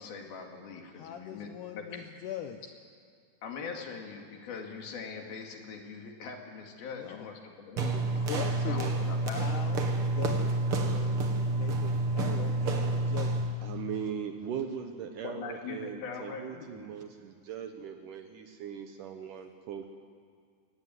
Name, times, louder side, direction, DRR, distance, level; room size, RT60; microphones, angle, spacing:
voice 1, 0.0-1.8 3.4-8.1 8.7-9.5 9.7-9.9 15.2-16.9, left 5 dB, 65° left, 2 dB, 4.0 m, -42 dB
voice 2, 1.0-2.7 6.8-7.3 7.9-8.9 9.4-11.2 11.5-13.6 19.2-19.3, left 10 dB, 85° left, 6 dB, 1.8 m, -42 dB
high heels rmk, 7.8-13.6, right 2 dB, 50° right, 1.8 m, -29 dB
voice 3, 13.6-19.9, right 8 dB, 70° right, 6 dB, 2.1 m, -39 dB
23.5 x 17.5 x 9.5 m, 2.1 s
omnidirectional pair, 4.7 m